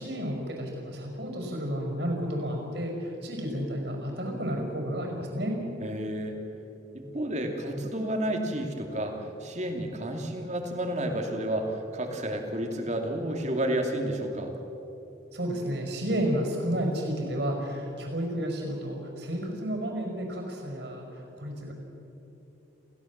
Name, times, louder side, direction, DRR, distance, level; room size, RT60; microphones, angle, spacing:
voice 1, 0.0-5.6 15.3-21.7, equal, 60° right, 2 dB, 5.4 m, -31 dB
voice 2, 5.8-6.4 6.9-14.5, right 1 dB, 40° right, 3 dB, 2.7 m, -31 dB
28.5 x 16.5 x 7.4 m, 3.0 s
head